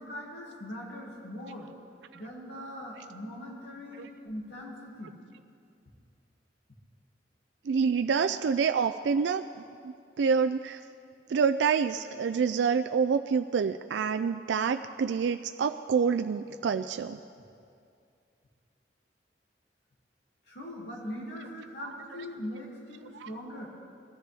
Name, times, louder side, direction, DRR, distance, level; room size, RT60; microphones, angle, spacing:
voice 1, 0.0-1.7 2.1-5.1 20.5-23.7, equal, 75° left, -3 dB, 2.2 m, -41 dB
voice 2, 7.7-10.8 11.3-17.2 23.2-23.3, right 6 dB, 90° right, 8 dB, 0.4 m, -27 dB
21.5 x 13.5 x 3.5 m, 2.4 s
head